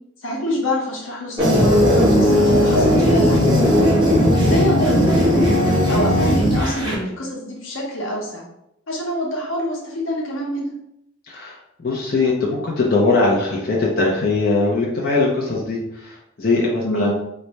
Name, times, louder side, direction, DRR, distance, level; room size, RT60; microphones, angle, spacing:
voice 1, 0.2-3.8 4.3-5.5 5.9-8.4 8.9-10.6 16.8-17.1, equal, 85° left, -2 dB, 1.0 m, -26 dB
sound 1, 1.4-6.9, equal, 20° right, 1.0 m, -16 dB
voice 2, 11.3-17.1, left 3 dB, 45° left, -4 dB, 0.6 m, -21 dB
3.2 x 2.2 x 4.0 m, 0.81 s
head